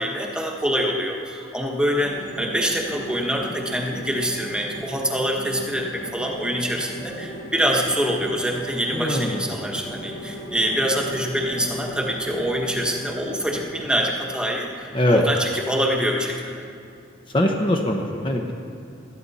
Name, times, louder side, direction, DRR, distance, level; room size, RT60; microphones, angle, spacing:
voice 1, 0.0-16.6, equal, 5° right, 0 dB, 1.3 m, -25 dB
sound 1, 1.9-14.0, right 1 dB, 50° left, 3.7 m, -37 dB
voice 2, 8.9-9.5 14.9-15.2 17.3-18.5, left 1 dB, 25° left, 2 dB, 0.9 m, -22 dB
18.0 x 13.0 x 4.2 m, 2.4 s
head